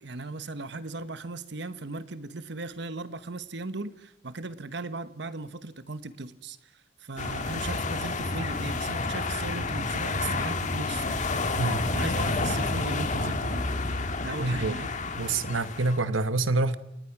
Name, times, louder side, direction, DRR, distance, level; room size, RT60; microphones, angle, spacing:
voice 1, 0.0-11.6 11.9-13.7 14.2-14.9, right 3 dB, 60° right, 1.1 m, -37 dB
sound 1, 7.2-16.0, left 3 dB, 40° left, 1.5 m, -30 dB
voice 2, 14.4-14.8 15.2-16.8, right 3 dB, 85° right, 1.2 m, -26 dB
29.0 x 20.0 x 6.0 m
head